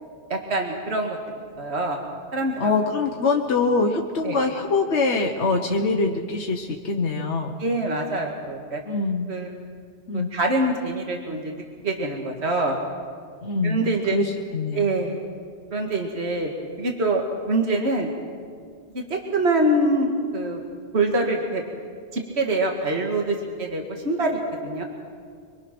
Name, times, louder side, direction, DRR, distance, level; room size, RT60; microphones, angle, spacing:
voice 1, 0.3-1.2 1.6-2.0 2.3-2.7 4.2-4.4 7.6-8.8 9.3-9.5 10.1-11.6 11.8-12.8 13.6-14.2 14.7-15.2 15.7-16.5 16.8-18.1 18.9-20.6 20.9-21.6 22.1-24.8, right 2 dB, 70° right, 1 dB, 2.2 m, -25 dB
voice 2, 2.6-7.6 8.9-9.3 10.1-10.3 13.4-13.8 14.1-14.9, left 3 dB, 90° left, 2 dB, 1.5 m, -24 dB
24.5 x 24.5 x 6.0 m, 2.1 s
omnidirectional pair, 1.1 m